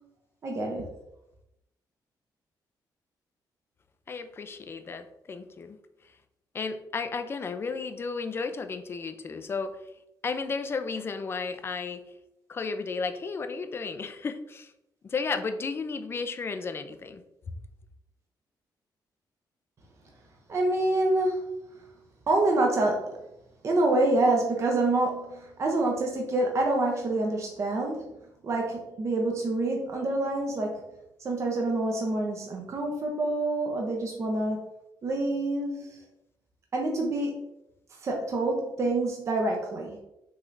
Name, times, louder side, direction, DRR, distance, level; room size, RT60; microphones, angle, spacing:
voice 1, 0.4-0.9 20.5-21.6 22.3-23.2 23.6-28.1 28.4-30.8 31.2-34.6 35.0-36.0 36.7-37.4 38.0-40.0, right 2 dB, 40° right, 0 dB, 0.7 m, -27 dB
voice 2, 4.1-5.8 6.5-9.7 10.2-12.0 12.5-14.7 15.0-17.2, left 4 dB, 30° left, 8 dB, 0.4 m, -33 dB
5.7 x 3.2 x 2.6 m, 0.88 s
cardioid pair, 145°, 8 cm